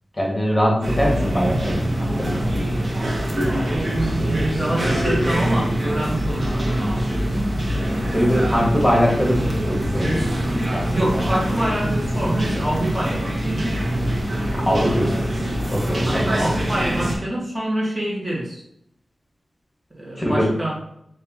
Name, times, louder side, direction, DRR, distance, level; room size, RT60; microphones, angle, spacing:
voice 1, 0.2-2.4 8.1-9.4 9.7-10.3 10.7-11.0 14.5-15.3 15.7-16.4 20.2-20.5, equal, 15° left, -3 dB, 1.6 m, -22 dB
sound 1, 0.8-17.1, equal, 40° right, 1.1 m, -23 dB
voice 2, 3.3-7.5 10.9-13.8 16.0-18.6 20.0-20.8, right 1 dB, 25° right, -5 dB, 1.4 m, -26 dB
6.4 x 2.6 x 2.8 m, 0.73 s
wide cardioid pair, 70°, 0 cm